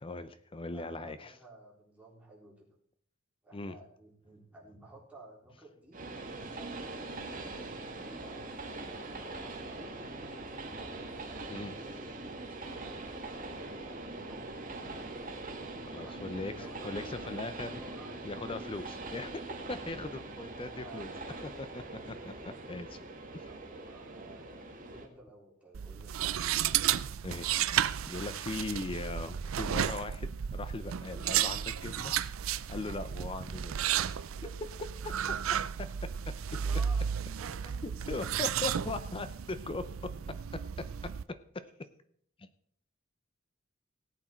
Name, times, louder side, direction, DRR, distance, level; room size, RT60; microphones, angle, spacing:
voice 1, 0.0-1.4 3.5-3.8 11.5-11.7 15.9-17.8 18.2-19.4 19.7-21.1 21.6-21.8 22.7-23.0 23.3-23.5 27.2-27.7 28.1-32.1 32.7-33.8 35.8-35.9 37.8-39.9 42.4-42.5, left 3 dB, 25° left, 12 dB, 0.6 m, -39 dB
voice 2, 0.7-2.7 3.4-6.1 6.4-10.4 11.2-13.3 13.8-14.5 15.9-17.3 17.8-18.3 20.1-20.2 20.7-21.5 21.9-22.3 23.4-26.3 34.4-34.5 36.6-37.7, right 2 dB, 5° right, -4 dB, 3.6 m, -54 dB
Train, 5.9-25.1, right 2 dB, 40° right, 1.8 m, -42 dB
sound 1, 25.7-41.2, right 9 dB, 80° right, 0.5 m, -33 dB
17.5 x 8.6 x 4.4 m, 0.64 s
head